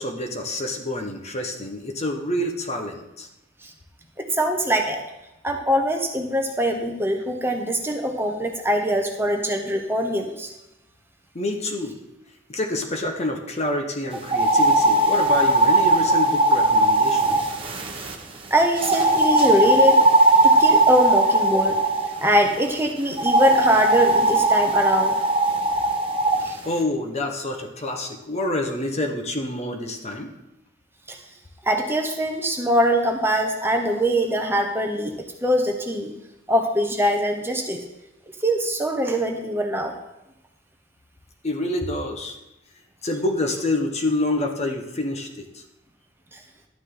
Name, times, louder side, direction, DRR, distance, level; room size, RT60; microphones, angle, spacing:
voice 1, 0.0-3.3 11.3-11.9 12.5-17.5 26.6-30.3 41.4-42.4 43.0-45.6, left 1 dB, 35° left, 3 dB, 1.1 m, -27 dB
voice 2, 4.2-5.0 5.4-10.5 18.5-20.0 20.4-21.8 22.2-25.1 26.4-26.6 31.1-31.2 31.6-35.2 35.4-36.1 36.5-37.8 38.4-39.9 46.3-46.4, equal, 10° right, 3 dB, 0.9 m, -22 dB
sound 1, 14.2-18.1 18.8-22.1 23.2-26.4, right 2 dB, 30° right, 1.2 m, -18 dB
11.5 x 9.8 x 3.9 m, 0.91 s
head